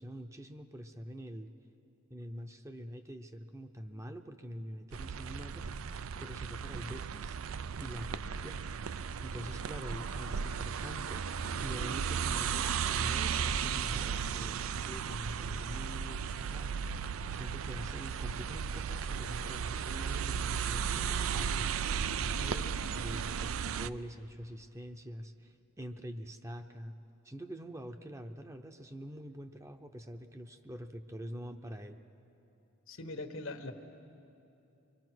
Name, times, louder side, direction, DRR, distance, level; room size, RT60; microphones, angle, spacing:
voice 1, 0.0-1.5 2.1-5.7 6.2-7.4 7.8-8.6 9.2-11.3 11.6-16.8 17.3-21.7 22.4-27.0 27.2-32.0, equal, 15° right, 7 dB, 0.7 m, -45 dB
sound 1, 4.9-23.9, right 7 dB, 90° right, 0.5 m, -35 dB
voice 2, 32.9-33.7, left 2 dB, 75° left, 6 dB, 1.4 m, -41 dB
25.0 x 23.0 x 6.2 m, 2.9 s
head